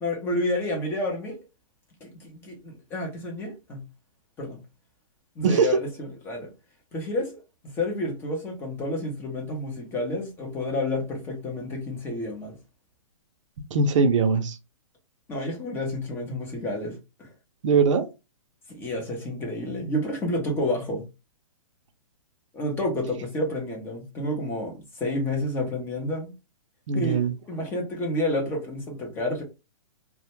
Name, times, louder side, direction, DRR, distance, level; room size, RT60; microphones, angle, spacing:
voice 1, 0.0-1.4 2.0-3.8 4.4-4.6 5.4-6.5 6.9-12.6 15.3-17.3 18.7-21.1 22.5-26.3 26.9-29.4, left 1 dB, 10° left, 0.5 m, -30 dB
voice 2, 13.7-14.6 17.6-18.1 26.9-27.3, right 5 dB, 60° right, 0.5 m, -21 dB
2.1 x 2.1 x 2.9 m
hypercardioid pair, 155°, 18 cm